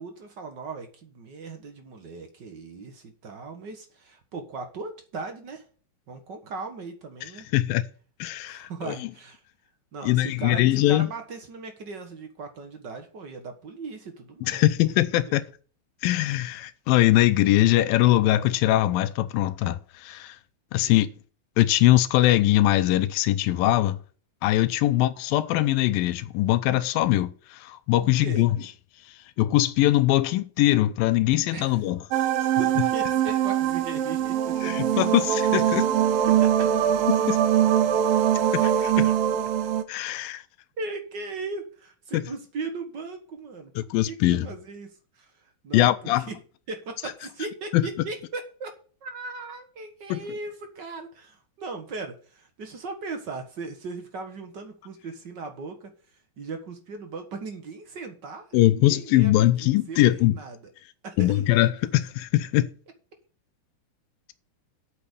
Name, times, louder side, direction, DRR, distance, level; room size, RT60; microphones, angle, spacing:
voice 1, 0.0-5.6 6.1-7.5 8.4-9.4 9.9-14.7 15.2-15.3 20.7-20.9 24.8-25.0 28.2-28.4 31.5-31.8 32.6-34.9 36.3-36.5 40.8-43.7 44.1-44.9 45.2-45.3 45.6-46.2 46.7-48.7 49.0-55.9 56.4-60.6 61.0-61.4, right 3 dB, 55° right, 1.2 m, -38 dB
voice 2, 7.5-7.8 8.2-9.1 10.0-11.1 14.4-15.4 16.0-20.4 20.7-21.1 21.6-24.0 24.4-28.6 29.4-32.5 34.6-35.9 37.3-37.4 38.5-39.1 39.9-40.4 42.1-42.2 43.8-44.5 45.7-46.3 47.7-47.9 50.1-50.2 58.5-60.4 61.2-62.7, left 15 dB, 90° left, 2.4 m, -22 dB
sound 1, 32.1-39.8, right 10 dB, 80° right, 2.7 m, -22 dB
8.5 x 7.0 x 6.8 m
omnidirectional pair, 4.0 m